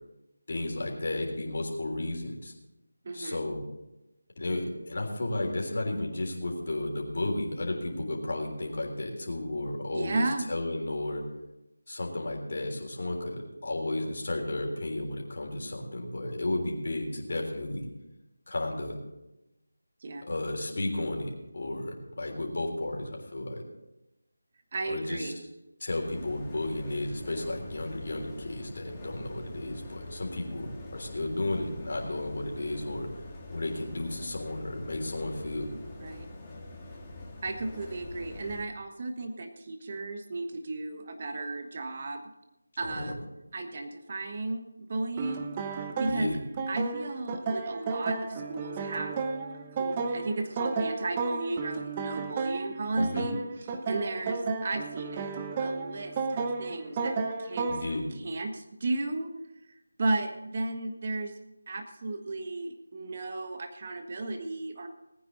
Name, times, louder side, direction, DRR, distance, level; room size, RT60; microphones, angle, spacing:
voice 1, 0.5-2.5 3.1-3.6 4.4-10.2 10.5-11.2 11.9-17.9 18.5-19.0 20.2-23.6 24.9-25.3 25.8-33.1 33.5-35.7 42.8-43.1 46.1-46.4 53.0-53.3 57.7-58.1, left 2 dB, 50° left, 0 dB, 3.6 m, -33 dB
voice 2, 3.0-3.4 9.9-10.5 20.0-20.3 24.7-25.4 36.0-36.3 37.4-42.2 42.8-43.2 43.5-45.5 46.0-46.3 46.7-49.2 49.8-55.3 55.6-57.7 58.2-59.3 60.0-61.3 61.7-64.9, right 2 dB, 35° right, 6 dB, 1.4 m, -34 dB
sound 1, 25.9-38.6, left 2 dB, 10° left, 2.1 m, -45 dB
sound 2, 45.2-58.0, right 4 dB, 20° right, 0.9 m, -33 dB
19.5 x 9.4 x 4.0 m, 0.94 s
figure-of-eight pair, 165°, 0 cm